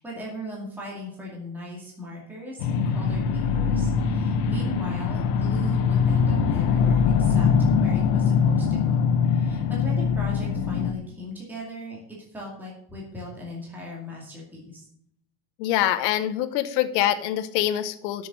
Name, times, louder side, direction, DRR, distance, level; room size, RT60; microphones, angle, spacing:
voice 1, 0.0-12.0 12.3-14.9, equal, 5° right, -4 dB, 2.3 m, -38 dB
sound 1, 2.6-10.9, left 6 dB, 70° left, 1.5 m, -22 dB
voice 2, 15.6-18.3, left 12 dB, 85° left, 10 dB, 1.1 m, -25 dB
9.0 x 6.9 x 7.5 m, 0.72 s
cardioid pair, 170°, 48 cm